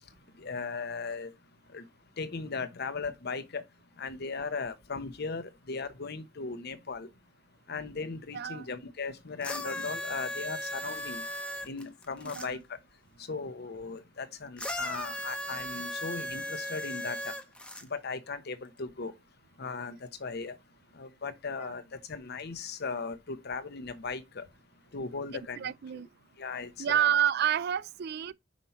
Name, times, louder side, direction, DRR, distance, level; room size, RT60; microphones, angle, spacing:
voice 1, 0.4-1.3 1.7-1.8 2.2-3.6 4.0-7.1 7.7-11.2 11.6-12.6 13.3-17.3 17.9-19.1 19.6-20.6 21.0-24.4 24.9-25.7 26.4-27.1, left 4 dB, 55° left, 0.9 m, -37 dB
voice 2, 8.3-8.7 12.2-12.6 21.6-21.7 25.6-26.1 26.8-28.3, right 10 dB, 55° right, 0.4 m, -29 dB
sound 1, 9.4-12.5 14.6-17.8 18.8-18.9, left 1 dB, 5° left, 0.9 m, -37 dB
5.7 x 5.2 x 4.3 m
head